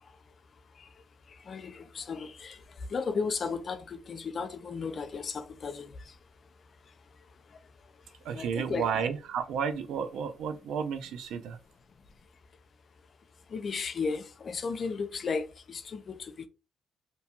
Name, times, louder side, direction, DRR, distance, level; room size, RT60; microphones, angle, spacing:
voice 1, 1.5-2.6 2.9-5.9 8.3-8.9 13.5-16.5, left 5 dB, 50° left, 0.4 m, -34 dB
voice 2, 8.2-11.6, right 7 dB, 80° right, 0.4 m, -32 dB
2.7 x 2.2 x 2.8 m
cardioid pair, 90°, 0 cm